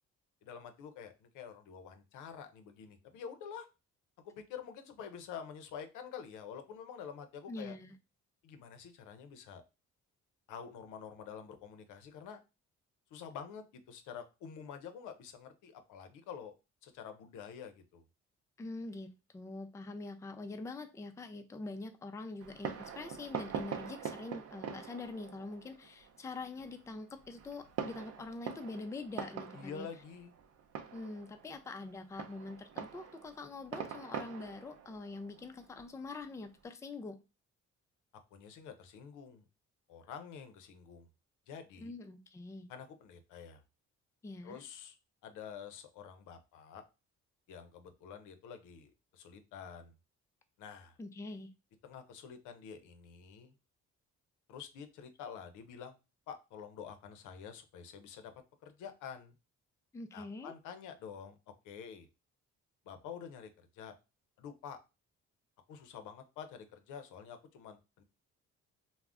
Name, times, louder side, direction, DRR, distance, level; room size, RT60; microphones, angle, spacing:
voice 1, 0.4-3.7 4.2-7.7 8.4-9.6 10.5-12.4 13.1-16.5 16.8-18.0 29.5-30.3 38.3-39.4 39.9-41.1 41.5-41.9 42.7-43.6 44.4-45.0 45.2-46.8 47.5-49.9 50.6-51.0 51.8-53.5 54.5-56.0 56.3-58.3 58.6-59.3 60.1-61.4 61.6-62.1 62.9-63.5 63.7-63.9 64.4-64.8 65.7-68.0, left 7 dB, 85° left, 8 dB, 0.5 m, -48 dB
voice 2, 7.5-7.9 18.6-29.9 30.9-37.2 41.8-42.7 44.2-44.6 51.0-51.5 59.9-60.5, left 3 dB, 10° left, 7 dB, 0.3 m, -44 dB
Fireworks, 22.4-36.6, right 7 dB, 55° right, 0.5 m, -44 dB
2.4 x 2.0 x 3.4 m, 0.28 s
cardioid pair, 90°, 30 cm